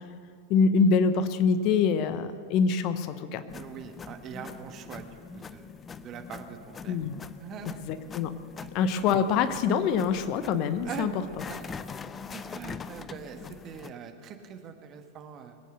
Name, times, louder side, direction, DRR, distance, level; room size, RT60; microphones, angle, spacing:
voice 1, 0.5-3.4 6.9-7.2 7.6-8.3 8.7-11.1 11.4-11.5, left 5 dB, 45° left, 11 dB, 0.9 m, -25 dB
sound 1, 3.5-13.9, left 5 dB, 20° left, 0.5 m, -43 dB
voice 2, 3.5-5.7 6.0-7.0 7.4-8.0 8.6-8.7 10.8-11.1 11.5-11.7 12.3-15.6, right 7 dB, 35° right, 6 dB, 1.5 m, -42 dB
22.0 x 9.3 x 6.7 m, 2.2 s
figure-of-eight pair, 90°, 0 cm